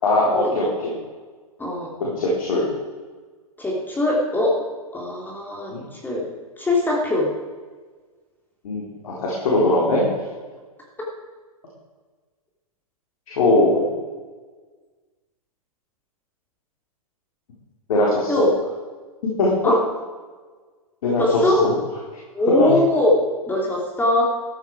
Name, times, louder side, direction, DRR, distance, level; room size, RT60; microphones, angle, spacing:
voice 1, 0.0-1.0 2.0-2.7 5.7-5.8 8.6-10.0 13.3-13.9 17.9-18.5 19.4-19.5 21.0-21.7 22.6-22.7, left 2 dB, 65° left, -4 dB, 4.2 m, -20 dB
voice 2, 1.6-1.9 3.6-4.6 4.9-6.2 6.6-7.3 18.3-18.5 19.6-19.8 21.2-21.6 22.3-23.1 23.5-24.2, left 1 dB, 10° left, -2 dB, 3.0 m, -21 dB
14.5 x 11.0 x 4.9 m, 1.4 s
hypercardioid pair, 120°, 19 cm